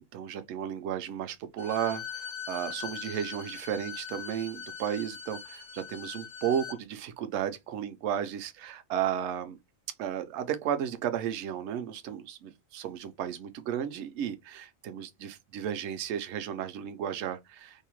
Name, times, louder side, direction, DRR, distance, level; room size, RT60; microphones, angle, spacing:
voice 1, 0.1-9.6 10.0-17.9, right 9 dB, 65° right, 0.8 m, -34 dB
Bowed string instrument, 1.6-6.8, left 7 dB, 70° left, 1.0 m, -41 dB
2.7 x 2.1 x 2.9 m
omnidirectional pair, 1.4 m